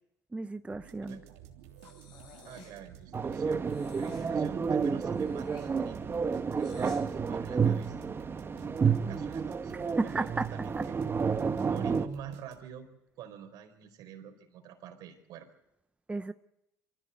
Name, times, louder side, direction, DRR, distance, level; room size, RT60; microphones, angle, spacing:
voice 1, 0.3-1.2 10.0-10.5 16.1-16.3, right 3 dB, 15° right, 11 dB, 0.8 m, -33 dB
sound 1, 0.7-12.9, right 10 dB, 85° right, 3.2 m, -53 dB
Breathing, 1.8-2.8 3.6-4.3 5.1-7.0, left 4 dB, 70° left, 7.9 m, -52 dB
voice 2, 2.4-6.2 6.5-8.1 8.5-9.7 10.0-11.0 11.6-12.9 13.2-15.5, right 8 dB, 70° right, 7 dB, 4.4 m, -46 dB
sound 2, 3.1-12.1, right 6 dB, 35° right, 1.4 m, -30 dB
24.0 x 15.5 x 8.2 m, 0.86 s
supercardioid pair, 75°, 7 cm